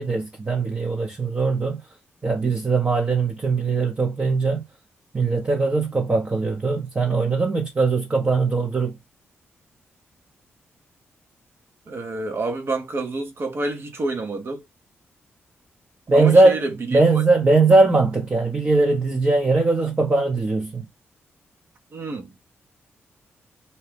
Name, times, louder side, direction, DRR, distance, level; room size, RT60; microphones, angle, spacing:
voice 1, 0.0-1.8 2.2-4.6 5.1-9.0 16.1-16.6 16.9-20.8, right 3 dB, 35° right, 0.8 m, -20 dB
voice 2, 11.9-14.6 16.1-17.0 19.8-19.9 21.9-22.3, right 3 dB, 55° right, 1.0 m, -28 dB
2.8 x 2.3 x 3.3 m
cardioid pair, 65°, 5 cm